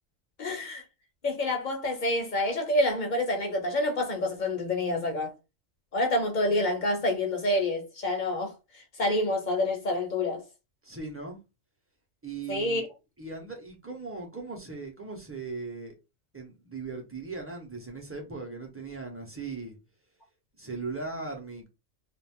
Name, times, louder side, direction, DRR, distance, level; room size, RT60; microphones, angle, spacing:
voice 1, 0.4-0.8 1.2-5.3 5.9-10.4 12.5-12.8, left 1 dB, 50° left, 0.6 m, -28 dB
voice 2, 10.8-11.4 12.2-12.9 13.2-16.0 16.3-19.8 20.5-21.7, right 4 dB, 15° right, 0.6 m, -38 dB
2.5 x 2.4 x 3.5 m
omnidirectional pair, 1.3 m